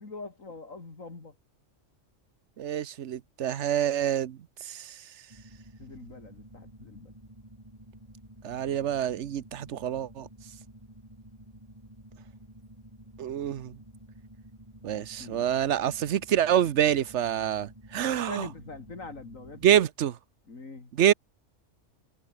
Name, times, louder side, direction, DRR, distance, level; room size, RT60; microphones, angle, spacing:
voice 1, 0.0-1.3 5.8-7.1 15.2-15.5 18.0-19.6 20.5-20.9, left 3 dB, 80° left, 3.6 m, -43 dB
voice 2, 2.6-5.0 8.4-10.3 13.2-13.8 14.8-18.5 19.6-20.2 20.9-21.1, right 10 dB, 65° right, 1.1 m, -26 dB
sound 1, 5.3-19.9, right 1 dB, 20° right, 5.1 m, -51 dB
omnidirectional pair, 1.4 m